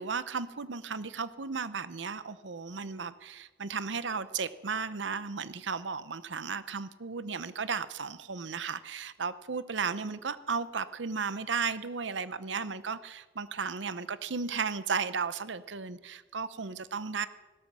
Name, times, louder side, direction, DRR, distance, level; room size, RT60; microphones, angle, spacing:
voice 1, 0.0-17.3, right 5 dB, 90° right, 15 dB, 0.8 m, -35 dB
17.0 x 13.0 x 6.1 m, 1.2 s
head